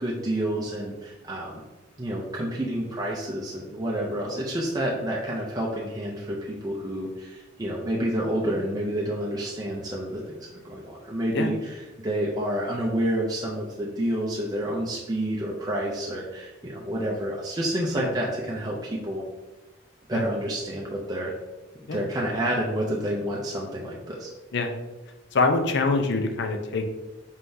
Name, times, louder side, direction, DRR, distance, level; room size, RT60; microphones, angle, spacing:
voice 1, 0.0-1.5 2.0-19.2 20.1-21.3 21.9-24.3, right 1 dB, 20° right, -3 dB, 0.5 m, -29 dB
voice 2, 25.3-26.8, left 3 dB, 65° left, 5 dB, 0.5 m, -24 dB
4.4 x 3.6 x 2.6 m, 1.1 s
head